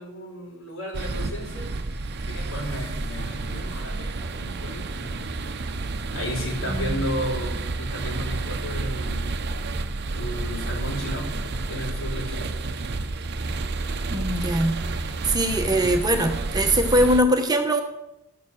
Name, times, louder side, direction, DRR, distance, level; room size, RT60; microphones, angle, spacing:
voice 1, 0.0-2.0 2.3-5.3 6.1-9.3 10.2-12.5, equal, 70° left, -1 dB, 4.0 m, -34 dB
sound 1, 0.9-17.2, right 3 dB, 50° right, 0.7 m, -30 dB
voice 2, 6.6-7.1 14.1-17.8, right 1 dB, 20° right, 4 dB, 0.9 m, -22 dB
13.0 x 7.0 x 6.3 m, 0.88 s
head